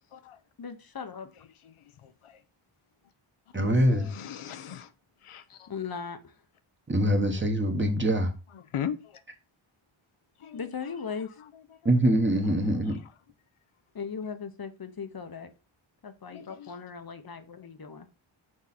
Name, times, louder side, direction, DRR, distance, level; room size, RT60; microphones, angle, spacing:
voice 1, 0.6-1.3 5.7-6.4 10.5-11.4 13.9-15.5 16.0-18.1, left 6 dB, 45° left, 0.7 m, -38 dB
voice 2, 1.6-2.4 3.7-4.9 5.2-5.7 8.5-9.2 10.4-10.7 11.4-11.8 12.9-13.0 16.3-16.8, left 9 dB, 90° left, 0.7 m, -40 dB
voice 3, 3.5-4.1 6.9-8.3 11.8-13.0, right 1 dB, 25° right, 1.1 m, -24 dB
6.2 x 4.7 x 4.1 m
wide cardioid pair, 120°, 49 cm